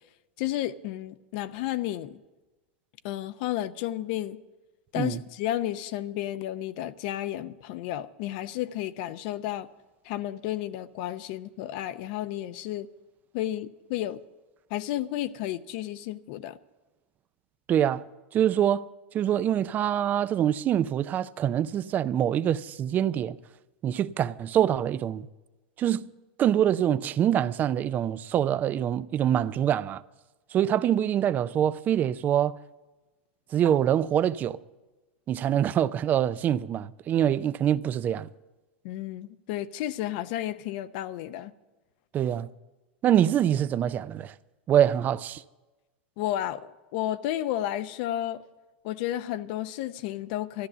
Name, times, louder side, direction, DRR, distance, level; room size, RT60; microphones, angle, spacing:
voice 1, 0.4-2.2 3.0-4.4 4.9-9.7 10.0-12.9 13.3-14.2 14.7-16.6 38.8-41.5 46.2-48.4 48.8-50.7, left 13 dB, 60° left, 0.7 m, -32 dB
voice 2, 17.7-18.1 18.3-18.9 19.1-23.4 23.8-25.3 25.8-26.1 26.4-30.0 30.5-32.6 33.5-34.6 35.3-38.3 42.1-42.5 43.0-44.3 44.7-45.4, right 10 dB, 30° right, 0.4 m, -25 dB
13.5 x 12.0 x 6.8 m
supercardioid pair, 130°, 6 cm